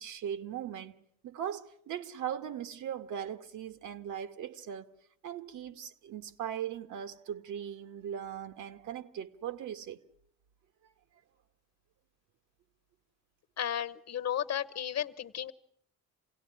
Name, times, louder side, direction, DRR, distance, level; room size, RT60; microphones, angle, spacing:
voice 1, 0.0-4.9 5.2-10.0, right 9 dB, 80° right, 1.5 m, -39 dB
voice 2, 13.6-15.5, left 10 dB, 60° left, 1.2 m, -34 dB
27.5 x 17.5 x 10.0 m
cardioid pair, 90°, 30 cm